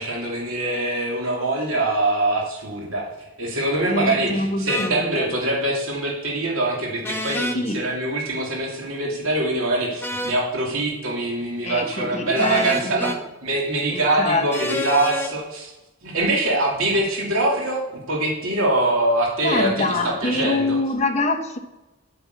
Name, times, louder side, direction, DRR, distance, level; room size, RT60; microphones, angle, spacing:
voice 1, 0.0-3.1 3.4-13.1 13.4-15.7 16.0-17.8 18.1-19.7 20.2-20.8, right 2 dB, 80° right, 2.9 m, -23 dB
voice 2, 3.8-5.3 7.5-7.9 11.7-13.2 13.9-14.8 19.4-21.6, left 2 dB, 30° left, 1.1 m, -25 dB
sound 1, 4.7-4.9 7.0-7.6 10.0-10.4 12.3-13.2 14.5-15.3, left 1 dB, 10° left, 1.0 m, -28 dB
8.8 x 7.0 x 8.3 m
head